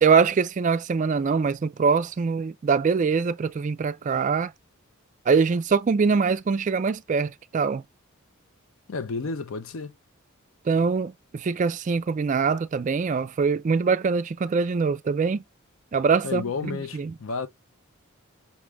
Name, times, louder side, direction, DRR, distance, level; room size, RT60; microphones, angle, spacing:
voice 1, 0.0-4.5 5.3-7.8 10.7-15.4 15.9-17.1, right 5 dB, 35° right, 0.3 m, -23 dB
voice 2, 8.9-9.9 16.2-17.5, left 4 dB, 65° left, 0.5 m, -31 dB
5.9 x 2.4 x 3.2 m
head